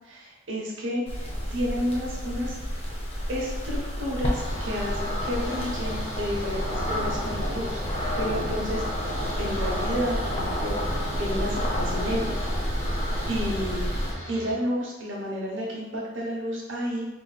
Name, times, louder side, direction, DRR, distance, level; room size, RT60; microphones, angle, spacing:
voice 1, 0.0-2.6 3.3-7.8 8.2-8.8 9.4-12.5 12.9-13.9 14.3-17.1, equal, 75° right, -3 dB, 0.9 m, -31 dB
sound 1, 1.1-14.1, equal, 30° left, 0.6 m, -29 dB
sound 2, 4.3-14.5, equal, 65° left, 1.2 m, -40 dB
2.9 x 2.2 x 4.0 m, 1.1 s
head